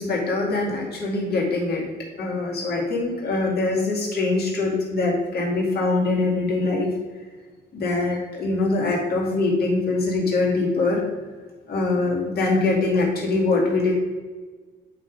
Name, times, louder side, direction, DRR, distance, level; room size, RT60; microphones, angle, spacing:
voice 1, 0.0-1.8 2.2-6.9 7.7-11.0 11.7-13.9, left 3 dB, 50° left, -2 dB, 2.3 m, -23 dB
8.1 x 3.6 x 4.8 m, 1.3 s
cardioid pair, 90°, 20 cm